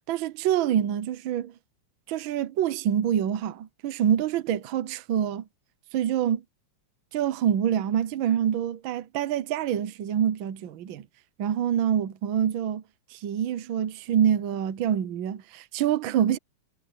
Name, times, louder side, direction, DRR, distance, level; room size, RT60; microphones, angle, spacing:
voice 1, 0.1-1.5 2.1-5.4 5.9-6.4 7.1-11.1 11.4-12.8 13.1-16.4, right 9 dB, 75° right, 1.1 m, -26 dB
omnidirectional pair, 3.4 m